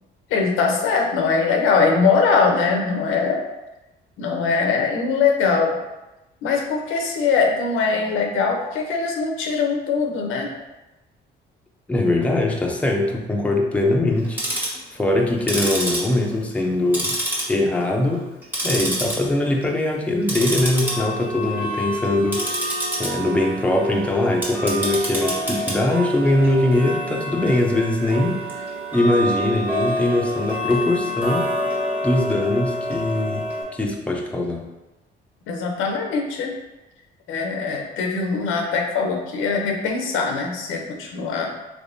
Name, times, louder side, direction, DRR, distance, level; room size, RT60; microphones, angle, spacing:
voice 1, 0.3-3.4 4.2-5.8 6.4-10.5 35.5-36.5 37.3-41.6, left 5 dB, 90° left, 2 dB, 0.6 m, -21 dB
voice 2, 11.9-14.4 14.9-17.2 17.5-18.2 18.6-22.4 23.0-28.5 28.9-31.5 32.0-33.5 33.7-34.6, left 1 dB, 5° left, 0 dB, 0.5 m, -21 dB
Tick-tock, 14.2-14.8 15.4-16.7 16.9-17.8 18.1-19.2 19.5-19.8 20.2-33.6, equal, 10° right, 1.1 m, -27 dB
3.4 x 3.1 x 2.6 m, 1.0 s
cardioid pair, 90°, 20 cm